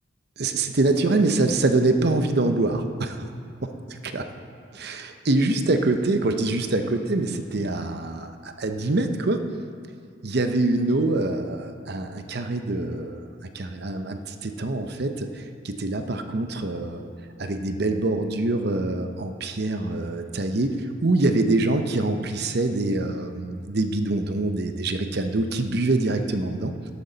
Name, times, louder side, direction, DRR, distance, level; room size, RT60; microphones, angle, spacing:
voice 1, 0.4-3.3 4.0-4.3 4.7-9.5 10.2-13.3 13.5-17.1 17.4-26.7, right 2 dB, 55° right, 7 dB, 0.7 m, -25 dB
12.0 x 11.5 x 4.0 m, 2.2 s
head